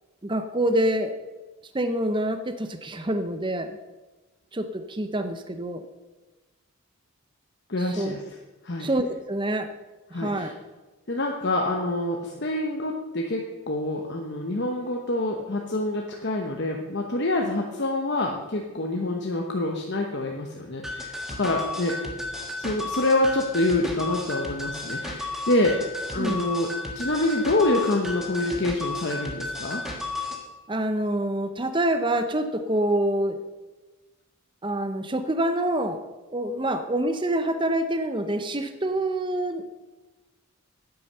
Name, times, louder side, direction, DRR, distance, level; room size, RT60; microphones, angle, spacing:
voice 1, 0.2-1.1 1.7-3.8 4.5-5.8 7.8-8.1 8.8-9.7 10.1-10.5 26.2-26.5 30.7-33.4 34.6-36.0 36.3-39.6, right 1 dB, 20° right, 9 dB, 0.6 m, -26 dB
voice 2, 7.7-8.2 8.6-8.9 10.1-10.5 11.1-22.0 22.6-25.8 26.1-26.7 26.9-29.8, left 2 dB, 50° left, 1 dB, 1.0 m, -26 dB
sound 1, 20.8-30.4, left 2 dB, ahead, 1.4 m, -33 dB
9.8 x 9.3 x 6.7 m, 1.2 s
head